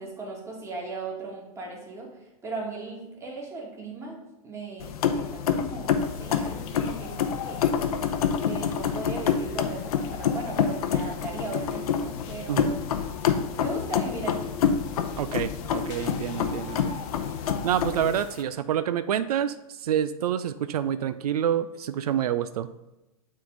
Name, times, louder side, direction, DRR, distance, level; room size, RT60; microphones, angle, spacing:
voice 1, 0.0-2.1 2.4-7.6 8.4-12.8 13.6-14.5, right 3 dB, 15° right, -1 dB, 1.7 m, -37 dB
sound 1, 4.8-18.2, left 7 dB, 80° left, 0.7 m, -27 dB
sound 2, 6.0-18.4, left 7 dB, 55° left, 1.0 m, -45 dB
voice 2, 15.2-17.0 17.6-19.5 19.8-22.7, right 10 dB, 85° right, 12 dB, 0.4 m, -27 dB
8.7 x 3.7 x 3.8 m, 0.99 s
hypercardioid pair, 130°, 19 cm